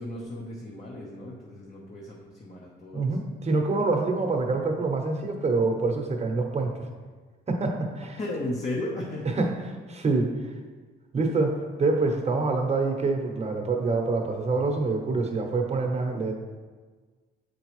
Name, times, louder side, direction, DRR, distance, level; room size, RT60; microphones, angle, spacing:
voice 1, 0.0-3.2 8.2-9.3, left 1 dB, 35° left, -3 dB, 1.0 m, -35 dB
voice 2, 2.9-6.7 7.5-8.2 9.4-9.5 9.9-10.5 11.1-16.3, right 3 dB, 35° right, 2 dB, 1.0 m, -26 dB
7.8 x 4.6 x 3.1 m, 1.4 s
cardioid pair, 90°, 20 cm